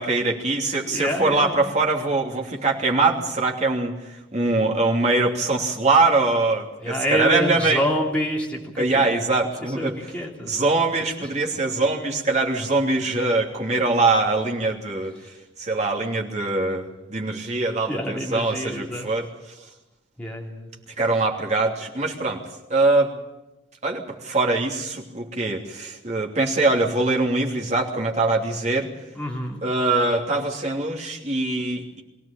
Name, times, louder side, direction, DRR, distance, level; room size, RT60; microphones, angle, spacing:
voice 1, 0.0-7.8 8.8-10.0 10.5-15.2 15.6-19.3 21.0-22.4 22.7-23.1 23.8-28.9 29.6-32.0, right 3 dB, 35° right, 0 dB, 3.0 m, -23 dB
voice 2, 0.9-1.7 6.8-9.2 9.7-10.6 11.2-11.3 17.9-19.1 20.2-20.7 29.1-29.6, equal, 5° left, -2 dB, 3.2 m, -27 dB
23.0 x 16.5 x 8.7 m, 0.99 s
head